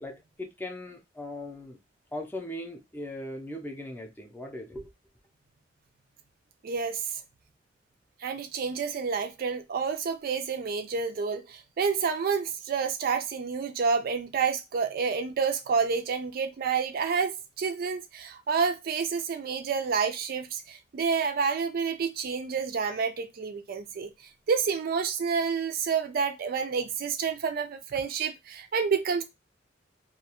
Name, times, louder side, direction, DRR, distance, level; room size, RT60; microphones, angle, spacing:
voice 1, 0.0-1.8 2.1-4.9, left 1 dB, 10° left, 0.5 m, -39 dB
voice 2, 6.6-7.0 8.2-24.1 24.5-29.2, right 5 dB, 55° right, 0.4 m, -29 dB
2.4 x 2.2 x 2.8 m
head